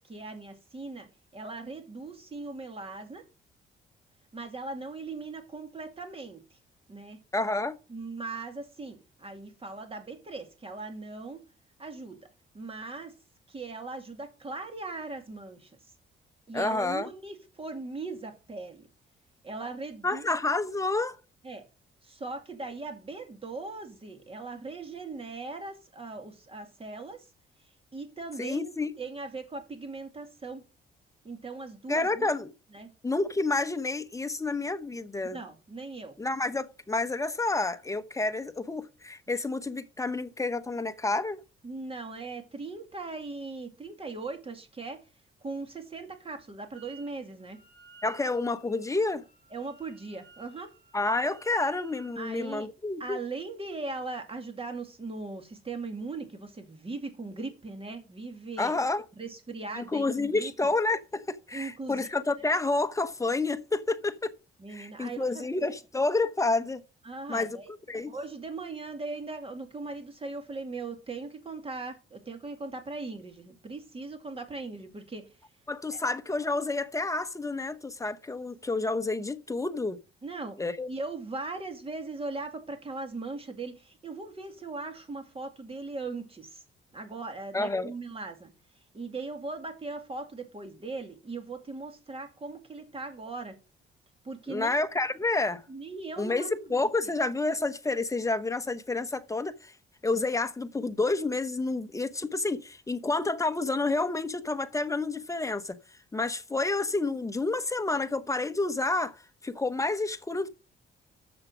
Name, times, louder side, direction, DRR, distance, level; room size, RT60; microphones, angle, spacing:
voice 1, 0.1-3.2 4.3-6.4 6.9-7.2 7.9-11.4 11.8-12.2 12.5-13.1 13.5-15.7 16.5-18.9 19.4-20.4 21.4-21.6 22.0-27.2 27.9-30.6 31.2-32.3 32.7-32.9 35.3-36.1 41.6-45.0 45.4-47.6 49.5-50.7 52.2-52.7 53.0-58.7 59.2-60.5 61.5-62.1 64.6-65.5 67.0-67.7 68.1-75.2 75.9-76.0 80.2-80.6 80.9-86.6 86.9-88.5 88.9-93.5 94.2-94.7 95.7-96.8, right 3 dB, 30° right, 2.3 m, -39 dB
voice 2, 7.3-7.8 16.5-17.1 20.0-21.2 28.4-28.9 31.9-32.5 33.0-35.4 36.2-41.4 48.0-49.2 50.9-53.2 58.6-59.0 59.7-64.3 64.7-66.8 67.3-67.6 67.9-68.1 75.7-80.0 80.6-80.9 87.5-87.9 94.5-95.6 96.2-99.7 100.0-105.8 106.1-109.2 109.4-110.5, left 3 dB, 15° left, 0.9 m, -29 dB
Wind instrument woodwind instrument, 46.7-47.1 47.4-52.2, right 5 dB, 50° right, 4.8 m, -55 dB
7.4 x 7.1 x 6.1 m
cardioid pair, 90°, 20 cm